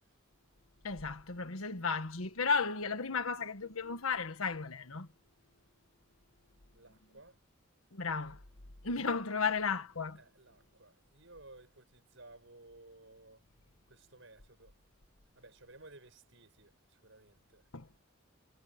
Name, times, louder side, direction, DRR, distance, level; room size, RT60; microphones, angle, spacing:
voice 1, 0.8-5.1 7.9-8.4 8.8-10.2 17.7-17.8, left 5 dB, 75° left, 1.5 m, -34 dB
voice 2, 6.7-7.4 10.2-13.4 13.9-14.8 15.3-17.6, right 2 dB, 60° right, 7.6 m, -57 dB
head